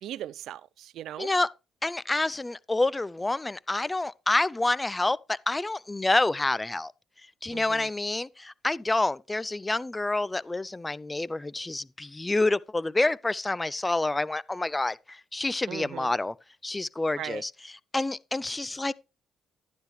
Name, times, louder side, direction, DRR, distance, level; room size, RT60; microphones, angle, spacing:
voice 1, 0.0-1.3 7.5-7.9 15.7-16.1 17.2-17.4, right 12 dB, 80° right, 0.4 m, -38 dB
voice 2, 1.2-1.5 1.8-6.9 7.4-16.3 16.6-17.5 17.9-18.9, left 2 dB, 15° left, 0.4 m, -28 dB
11.5 x 10.0 x 3.2 m
cardioid pair, 90°, 0 cm